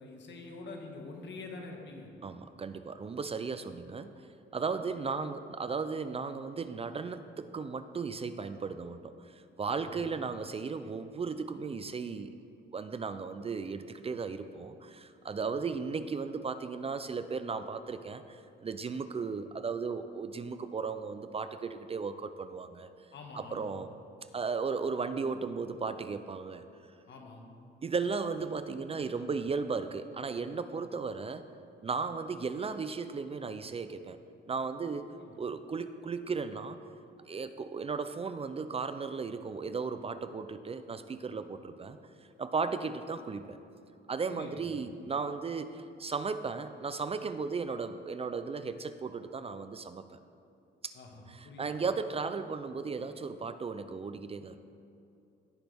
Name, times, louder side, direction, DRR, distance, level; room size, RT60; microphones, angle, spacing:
voice 1, 0.0-2.1 9.8-10.1 15.3-15.5 23.1-23.7 27.1-27.5 35.1-35.4 44.3-44.8 50.9-51.8, left 3 dB, 65° left, 2 dB, 1.6 m, -46 dB
voice 2, 2.2-4.2 4.5-12.3 12.7-22.9 23.4-23.9 24.3-26.6 27.8-31.5 31.8-34.2 34.5-35.0 35.4-36.8 37.2-42.0 42.4-43.6 44.1-50.2 50.8-50.9 51.3-54.6, right 5 dB, 30° right, 11 dB, 0.5 m, -36 dB
17.5 x 5.9 x 3.5 m, 2.6 s
cardioid pair, 90°, 20 cm